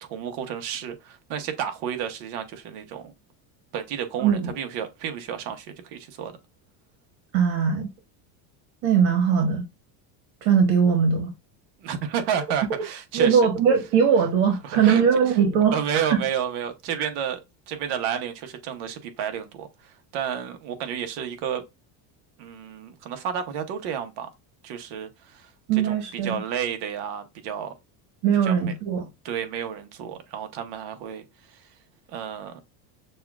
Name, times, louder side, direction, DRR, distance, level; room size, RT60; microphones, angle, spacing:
voice 1, 0.0-3.1 3.7-6.3 11.8-13.4 14.6-15.4 15.7-17.4 17.7-21.6 22.4-24.3 24.6-27.7 28.4-28.7 29.2-31.6 32.1-32.6, right 8 dB, 60° right, 1.0 m, -31 dB
voice 2, 4.2-4.5 7.3-7.9 8.8-9.6 10.4-11.3 13.1-16.1 17.0-17.1 25.7-26.4 28.2-29.1, right 7 dB, 90° right, 1.2 m, -20 dB
6.6 x 2.3 x 2.4 m
cardioid pair, 145°, 44 cm